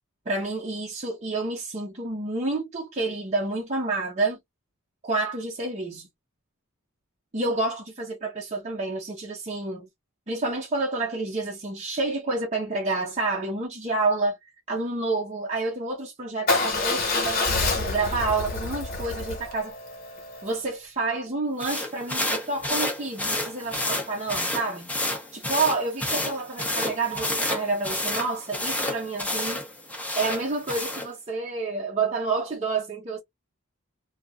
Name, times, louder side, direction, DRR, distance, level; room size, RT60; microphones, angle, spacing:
voice 1, 0.3-4.4 5.0-6.1 7.3-9.9 10.3-14.4 14.7-19.7 20.4-24.9 25.3-29.6 30.2-33.2, right 3 dB, 35° right, 0.7 m, -29 dB
Motorcycle / Engine starting / Idling, 16.5-20.6, left 3 dB, 45° left, 1.4 m, -27 dB
sound 1, 21.6-31.1, left 1 dB, 5° left, 0.8 m, -30 dB
3.0 x 2.4 x 2.4 m
head